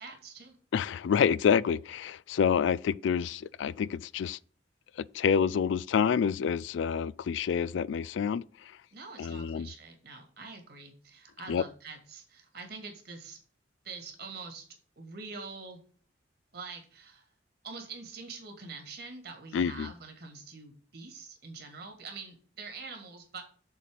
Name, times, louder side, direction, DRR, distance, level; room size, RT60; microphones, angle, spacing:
voice 1, 0.0-0.6 8.9-13.4 13.8-14.6 15.0-15.8 16.5-17.3 17.6-23.4, right 4 dB, 55° right, 2.3 m, -45 dB
voice 2, 0.7-4.4 5.0-8.8 9.2-9.7 11.5-11.6 19.5-19.9, left 7 dB, 75° left, 0.3 m, -28 dB
7.0 x 4.2 x 6.3 m
head